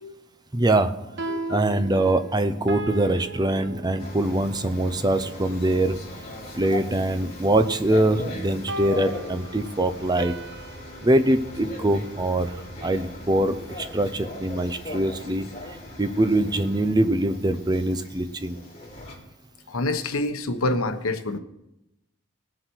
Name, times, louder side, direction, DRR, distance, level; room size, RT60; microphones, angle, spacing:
voice 1, 0.5-0.9 1.5-6.0 6.5-10.3 11.0-12.5 12.8-15.5 16.0-18.6, right 1 dB, 20° right, 10 dB, 0.7 m, -23 dB
sound 1, 1.0-4.4 8.7-11.2, right 3 dB, 55° right, 0.9 m, -36 dB
voice 2, 1.3-1.6 19.7-21.4, left 2 dB, 90° left, 8 dB, 1.1 m, -27 dB
sound 2, 4.0-19.1, left 1 dB, 30° left, 3.6 m, -39 dB
19.0 x 7.6 x 4.6 m, 0.89 s
head